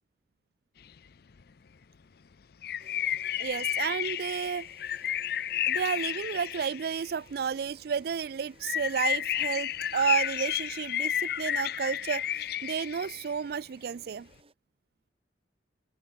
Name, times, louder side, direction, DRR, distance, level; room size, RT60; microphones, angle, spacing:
sound 1, 2.6-7.3 8.6-13.4, left 11 dB, 60° left, 0.5 m, -32 dB
sound 2, 2.8-14.5, right 2 dB, 30° right, 1.7 m, -59 dB
voice 1, 3.4-4.7 5.7-14.3, right 7 dB, 55° right, 0.3 m, -31 dB
open air
head